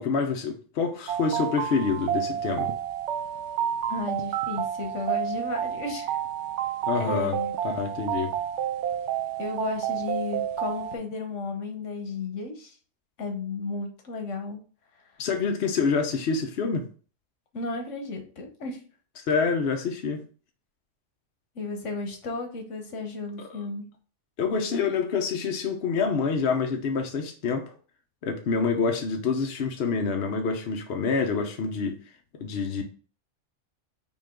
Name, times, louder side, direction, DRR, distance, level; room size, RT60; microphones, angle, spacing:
voice 1, 0.0-2.7 6.9-8.3 15.2-16.9 19.3-20.2 23.5-23.6 24.4-27.7 28.2-32.0 32.4-32.8, left 5 dB, 60° left, 0.9 m, -27 dB
sound 1, 1.1-11.0, right 9 dB, 75° right, 0.9 m, -30 dB
voice 2, 3.9-6.2 6.9-7.5 9.4-12.7 13.2-14.6 17.5-18.8 21.5-23.9, left 3 dB, 80° left, 1.3 m, -34 dB
5.9 x 2.3 x 3.6 m
omnidirectional pair, 1.2 m